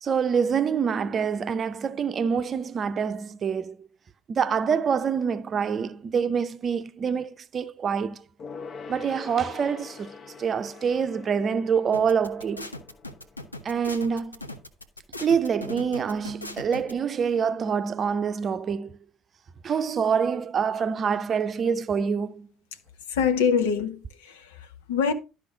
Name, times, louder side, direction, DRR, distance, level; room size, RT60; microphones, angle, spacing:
voice 1, 0.0-3.9 4.3-8.2 8.9-10.1 10.4-12.8 13.6-14.4 15.2-19.0 19.6-22.5, right 6 dB, 40° right, 0.6 m, -26 dB
Gong, 8.4-14.3 14.6-14.7, left 5 dB, 40° left, 1.0 m, -44 dB
sound 1, 11.9-16.9, left 2 dB, 90° left, 0.6 m, -38 dB
voice 2, 23.1-25.1, left 6 dB, 70° left, 1.0 m, -25 dB
12.0 x 5.1 x 3.7 m
figure-of-eight pair, 55°, 0 cm